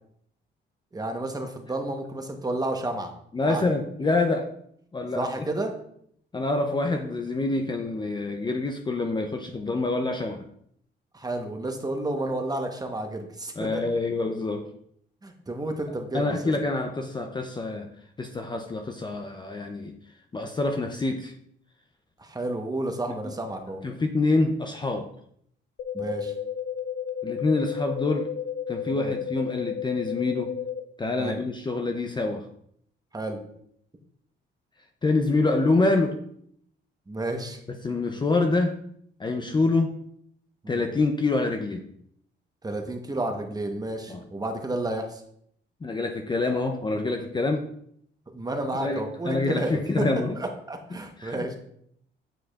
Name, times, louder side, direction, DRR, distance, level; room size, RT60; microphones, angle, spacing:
voice 1, 0.9-3.1 3.4-3.6 5.2-5.7 11.1-13.8 15.2-16.5 22.2-23.8 25.9-26.3 28.9-29.1 31.2-31.4 33.1-33.4 37.1-37.6 39.4-39.6 40.6-40.8 42.6-45.2 48.3-50.0 50.4-51.6, right 2 dB, 20° right, 4 dB, 0.9 m, -31 dB
voice 2, 3.3-4.5 4.9-5.3 6.3-10.4 13.6-14.7 16.1-17.9 18.2-19.9 20.3-21.3 23.2-23.3 23.8-25.1 27.2-28.3 28.7-30.6 31.0-32.5 35.0-36.2 37.7-38.8 39.2-39.9 40.7-41.8 44.1-44.2 45.8-47.7 48.8-50.4 50.9-51.6, left 3 dB, 20° left, 4 dB, 0.5 m, -26 dB
sound 1, 25.8-30.8, left 8 dB, 75° left, 0.5 m, -32 dB
8.8 x 4.7 x 2.4 m, 0.69 s
cardioid pair, 90°, 20 cm